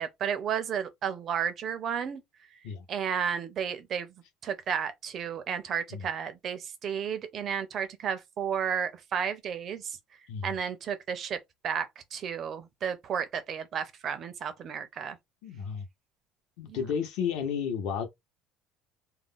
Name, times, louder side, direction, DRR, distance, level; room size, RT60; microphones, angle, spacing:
voice 1, 0.0-2.2 2.9-4.1 4.4-10.0 10.4-11.4 11.6-15.2 16.7-16.8, right 7 dB, 30° right, 0.4 m, -32 dB
voice 2, 15.4-15.8 16.6-18.1, left 7 dB, 60° left, 0.8 m, -32 dB
2.4 x 2.1 x 3.5 m
cardioid pair, 180°, 0 cm